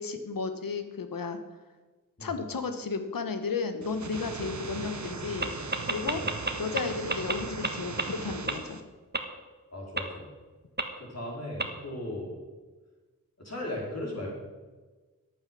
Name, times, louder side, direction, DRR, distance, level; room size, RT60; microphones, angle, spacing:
voice 1, 0.0-1.4 2.2-5.5 5.9-6.2 6.6-8.8, left 4 dB, 80° left, 9 dB, 1.3 m, -33 dB
sound 1, 3.8-8.8, right 4 dB, 55° right, 1.3 m, -39 dB
sound 2, 5.4-5.5 5.7-6.8 7.1-7.3 7.6-7.7 8.0-8.1 8.5-8.6 9.1-9.2 10.0-10.1 10.8-10.9 11.6-11.7, right 3 dB, 30° right, 1.5 m, -27 dB
voice 2, 9.7-10.3 11.0-12.3 13.4-14.3, left 1 dB, 50° left, -2 dB, 4.6 m, -37 dB
10.5 x 8.9 x 6.2 m, 1.3 s
cardioid pair, 40°, 34 cm